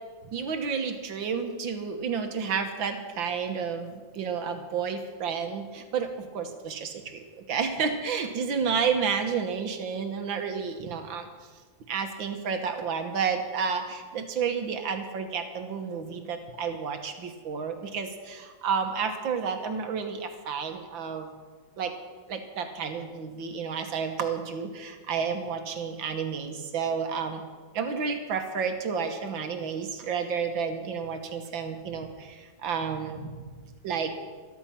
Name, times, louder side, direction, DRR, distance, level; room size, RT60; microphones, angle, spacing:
voice 1, 0.3-11.3 11.9-21.3 21.8-21.9 22.3-27.4 27.7-33.3 33.8-34.1, right 6 dB, 80° right, 6 dB, 2.0 m, -31 dB
13.5 x 13.0 x 5.8 m, 1.4 s
omnidirectional pair, 2.1 m